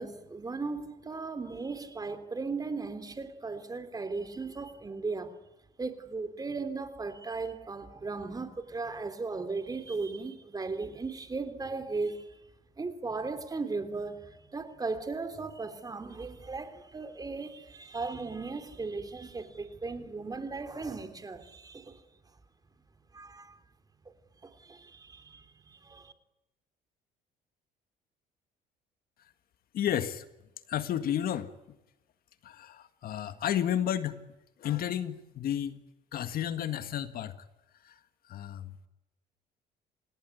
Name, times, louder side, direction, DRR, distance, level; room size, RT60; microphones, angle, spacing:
voice 1, 0.0-5.4 5.8-12.4 12.8-22.0 23.1-23.6 24.4-26.1, right 4 dB, 20° right, 3.4 m, -37 dB
voice 2, 29.7-30.3 30.7-31.5 32.4-34.2 34.6-35.8 36.1-37.4 37.8-38.0 38.3-38.8, left 10 dB, 60° left, 1.8 m, -32 dB
28.0 x 18.5 x 9.6 m
cardioid pair, 110°, 17 cm